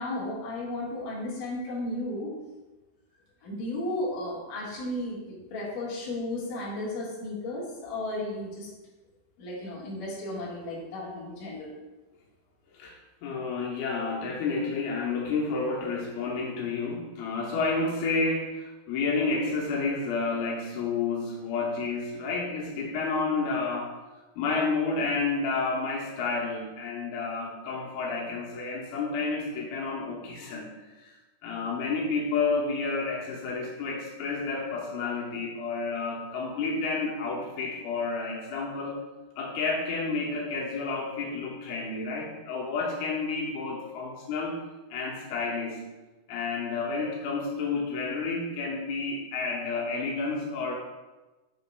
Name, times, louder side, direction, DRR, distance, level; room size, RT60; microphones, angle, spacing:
voice 1, 0.0-2.3 3.4-8.7 9.4-11.7, left 1 dB, 65° left, -5 dB, 3.1 m, -34 dB
voice 2, 13.2-23.9 24.4-30.7 31.0-31.2 31.4-39.0 39.4-44.6 44.9-45.8 46.3-50.7, left 4 dB, 90° left, -2 dB, 2.9 m, -30 dB
7.9 x 6.9 x 2.2 m, 1.1 s
omnidirectional pair, 4.3 m